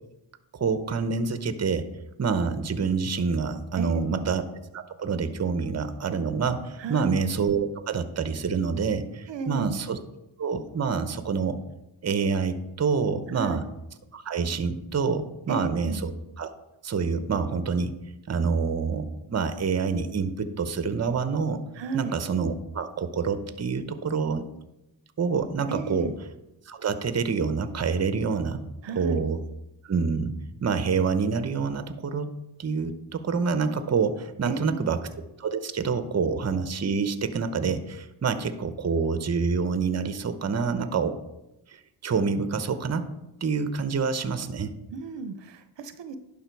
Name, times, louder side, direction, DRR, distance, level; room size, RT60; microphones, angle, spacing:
voice 1, 0.5-1.9 2.2-4.4 4.7-10.0 10.4-11.6 12.0-13.6 14.1-16.1 16.4-16.5 16.8-17.9 18.3-21.6 21.9-24.4 25.2-26.1 26.7-28.6 29.0-29.4 29.8-30.3 30.6-32.3 32.6-35.0 35.4-41.2 41.7-43.1 43.4-44.7, right 5 dB, 35° right, 11 dB, 0.9 m, -27 dB
voice 2, 3.8-4.3 6.8-7.1 9.3-9.8 13.3-13.6 15.5-16.0 21.7-22.1 25.7-26.1 28.8-29.2 34.4-34.9 44.9-46.2, right 4 dB, 65° right, 10 dB, 0.8 m, -34 dB
11.0 x 5.2 x 4.6 m, 0.90 s
cardioid pair, 70°, 47 cm